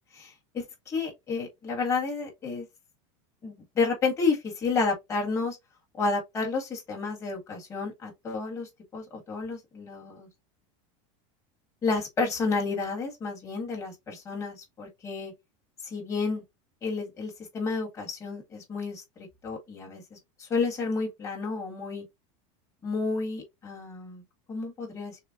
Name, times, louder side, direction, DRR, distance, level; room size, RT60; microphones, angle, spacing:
voice 1, 0.2-2.7 3.4-5.6 6.0-10.3 11.8-15.3 15.8-16.4 16.8-22.1 22.8-24.2 24.5-25.2, left 4 dB, 15° left, 1.7 m, -31 dB
6.5 x 2.3 x 2.5 m
supercardioid pair, 165°, 17 cm